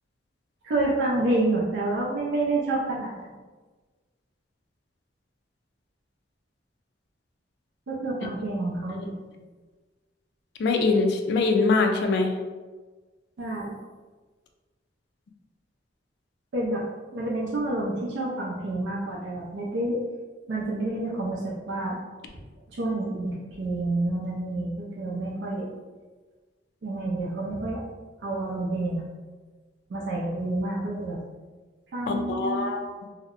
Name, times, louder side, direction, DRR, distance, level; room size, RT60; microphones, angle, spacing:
voice 1, 0.6-3.3 7.9-9.1 13.4-13.8 16.5-16.8 17.1-20.0 20.5-22.0 22.7-25.7 26.8-27.8 28.2-29.1 29.9-31.2 31.9-32.7, right 2 dB, 75° right, -5 dB, 0.4 m, -28 dB
voice 2, 10.6-12.3 32.1-32.9, left 3 dB, 60° left, 4 dB, 0.3 m, -23 dB
2.7 x 2.0 x 2.4 m, 1.3 s
head